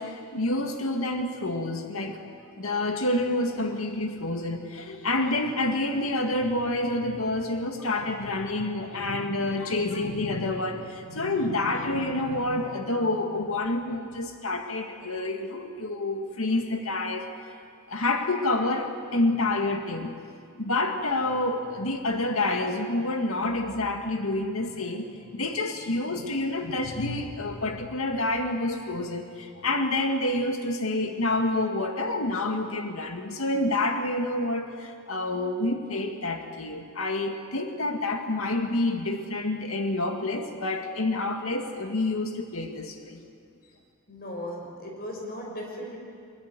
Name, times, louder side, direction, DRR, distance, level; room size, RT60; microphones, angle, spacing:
voice 1, 0.0-17.3 17.9-20.1 20.6-43.2, left 2 dB, 90° left, 4 dB, 2.1 m, -28 dB
voice 2, 44.1-46.0, equal, 50° left, 0 dB, 6.3 m, -37 dB
23.0 x 22.5 x 9.3 m, 2.3 s
head